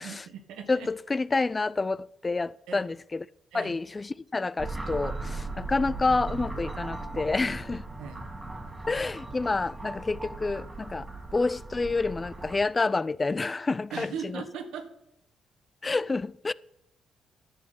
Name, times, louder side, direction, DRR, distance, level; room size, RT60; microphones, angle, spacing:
voice 1, 0.0-0.9 2.7-2.9 3.5-3.7 8.0-8.2 13.9-14.9, right 7 dB, 85° right, 1.7 m, -39 dB
voice 2, 0.7-3.2 3.5-7.8 8.9-11.1 11.3-14.4 15.8-16.5, left 3 dB, 25° left, 0.3 m, -28 dB
sound 1, 4.6-12.6, right 3 dB, 20° right, 1.6 m, -38 dB
11.0 x 6.2 x 8.6 m
cardioid pair, 90°, 0 cm